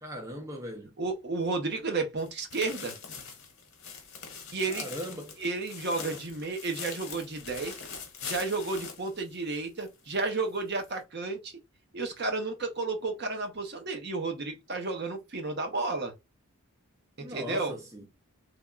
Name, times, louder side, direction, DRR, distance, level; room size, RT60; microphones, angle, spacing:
voice 1, 0.0-0.9 4.6-5.4 17.2-18.1, equal, 15° right, 0.5 m, -39 dB
voice 2, 1.0-2.9 4.5-4.9 5.4-7.8 8.2-11.5 11.9-16.1 17.2-17.7, right 3 dB, 50° right, 0.8 m, -32 dB
sound 1, 2.2-9.9 10.2-10.3 10.8-10.9, left 6 dB, 65° left, 1.0 m, -42 dB
3.4 x 2.2 x 2.4 m
head